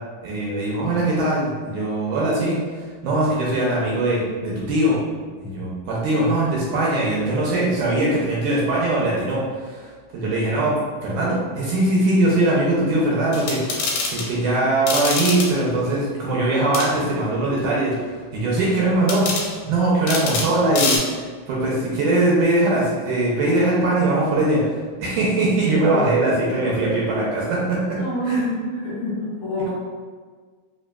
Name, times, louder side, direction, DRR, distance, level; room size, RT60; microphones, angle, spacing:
voice 1, 0.2-2.6 3.0-5.0 5.4-10.8 11.0-17.9 18.3-19.3 19.7-24.7 25.0-28.0 28.2-28.6, right 2 dB, 80° right, -5 dB, 2.0 m, -21 dB
sound 1, 13.3-14.3 14.9-15.5 16.7-16.9 19.1-19.5 20.1-20.5 20.8-21.0, left 3 dB, 75° left, 1.9 m, -24 dB
voice 2, 27.9-29.7, equal, 50° left, -12 dB, 1.9 m, -27 dB
5.0 x 2.8 x 2.2 m, 1.5 s
omnidirectional pair, 3.8 m